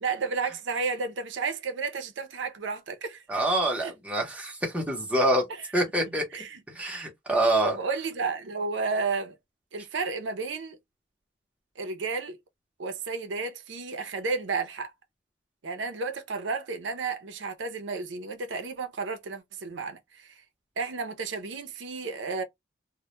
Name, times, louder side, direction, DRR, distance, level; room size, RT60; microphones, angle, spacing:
voice 1, 0.0-3.2 3.8-3.9 5.5-5.6 6.3-6.6 7.7-9.3 9.7-10.8 11.8-12.4 12.8-14.9 15.6-20.3 20.8-22.4, right 4 dB, 85° right, 0.5 m, -32 dB
voice 2, 3.3-5.5 5.7-6.2 6.7-7.8, right 1 dB, 5° right, 0.6 m, -26 dB
2.1 x 2.1 x 2.9 m
head